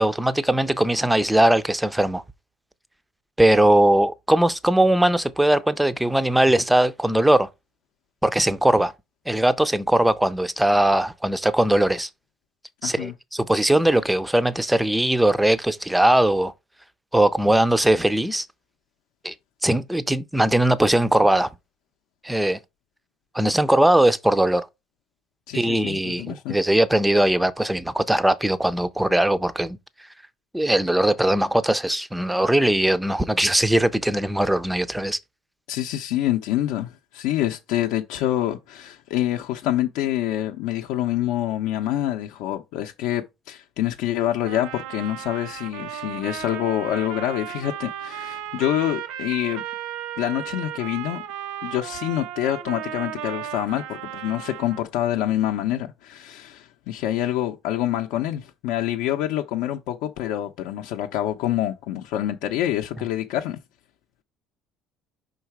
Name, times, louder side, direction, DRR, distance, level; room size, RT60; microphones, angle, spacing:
voice 1, 0.0-2.2 3.4-7.5 8.2-8.9 9.3-12.1 12.8-16.5 17.1-18.5 19.2-19.3 19.6-21.5 22.2-22.6 23.3-24.7 25.5-29.8 30.5-35.2, right 1 dB, 5° right, 0.4 m, -20 dB
voice 2, 12.8-13.1 25.5-26.6 35.7-49.6 50.2-51.2 51.6-63.6, left 13 dB, 75° left, 0.6 m, -26 dB
Trumpet, 44.4-54.9, right 11 dB, 75° right, 0.7 m, -35 dB
5.6 x 3.9 x 4.6 m
cardioid pair, 170°, 0 cm